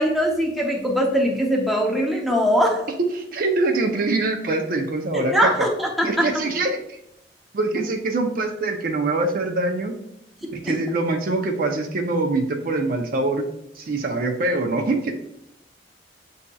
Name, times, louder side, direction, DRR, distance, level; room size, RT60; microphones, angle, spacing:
voice 1, 0.0-2.8 5.1-6.3 10.4-10.8, equal, ahead, -1 dB, 0.6 m, -21 dB
voice 2, 3.1-5.7 6.0-7.0 7.5-9.9 10.5-13.5 13.8-15.1, right 2 dB, 45° right, 3 dB, 0.4 m, -24 dB
7.2 x 2.7 x 2.2 m, 0.75 s
head